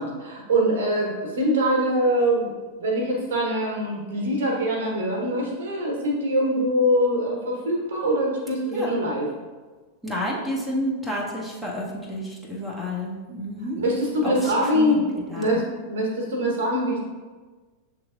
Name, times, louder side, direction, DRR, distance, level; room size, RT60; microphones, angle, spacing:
voice 1, 0.0-2.5 2.8-9.3 13.8-15.1 15.3-17.0, equal, 60° right, -1 dB, 1.0 m, -23 dB
voice 2, 10.0-13.8 14.2-15.0 15.3-15.6, equal, ahead, -6 dB, 0.9 m, -30 dB
7.0 x 3.1 x 2.5 m, 1.3 s
figure-of-eight pair, 90°, 0 cm